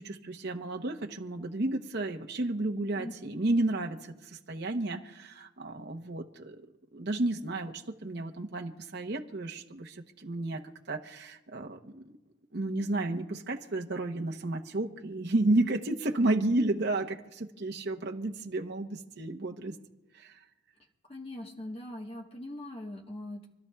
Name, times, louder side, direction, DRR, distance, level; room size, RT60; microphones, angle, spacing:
voice 1, 0.0-4.1 4.5-6.6 6.9-10.6 10.9-12.2 12.5-19.8 20.1-20.3, right 2 dB, 55° right, 3 dB, 0.9 m, -32 dB
voice 2, 21.1-23.5, left 1 dB, 30° left, 1 dB, 1.3 m, -41 dB
28.5 x 12.0 x 2.3 m, 1.0 s
head